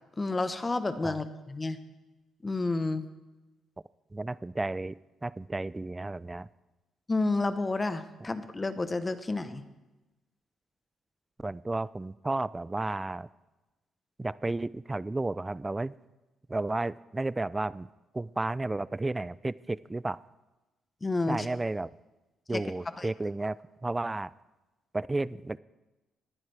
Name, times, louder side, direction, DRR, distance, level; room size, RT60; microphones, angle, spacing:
voice 1, 0.2-1.8 2.4-3.1 7.1-9.6 21.0-21.5 22.5-22.6 23.0-23.1, left 3 dB, 25° left, 11 dB, 0.9 m, -30 dB
voice 2, 4.1-6.5 11.4-13.3 14.2-15.9 16.5-17.9 18.1-20.2 21.3-21.9 22.5-23.6 23.8-24.3 24.9-25.6, right 2 dB, 15° right, 20 dB, 0.3 m, -32 dB
19.0 x 10.5 x 3.3 m, 1.1 s
cardioid pair, 90°, 0 cm